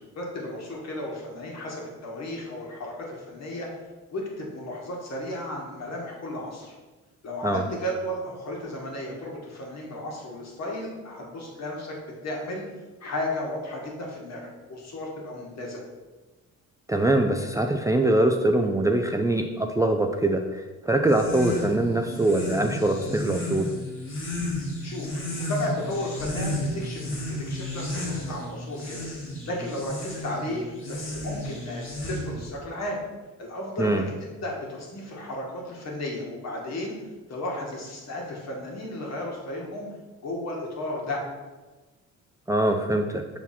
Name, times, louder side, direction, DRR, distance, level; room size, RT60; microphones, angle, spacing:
voice 1, 0.0-3.7 4.1-6.8 7.2-12.0 12.2-12.6 13.0-15.8 24.8-29.1 29.5-31.8 32.1-33.0 33.4-37.0 37.3-39.9 40.2-41.2, left 1 dB, 60° left, -2 dB, 1.9 m, -34 dB
voice 2, 16.9-23.7 33.8-34.0 42.5-43.2, right 1 dB, 10° right, 3 dB, 0.4 m, -23 dB
sound 1, 21.0-32.5, left 1 dB, 45° left, 1.8 m, -33 dB
5.8 x 4.1 x 4.3 m, 1.3 s
cardioid pair, 90°, 30 cm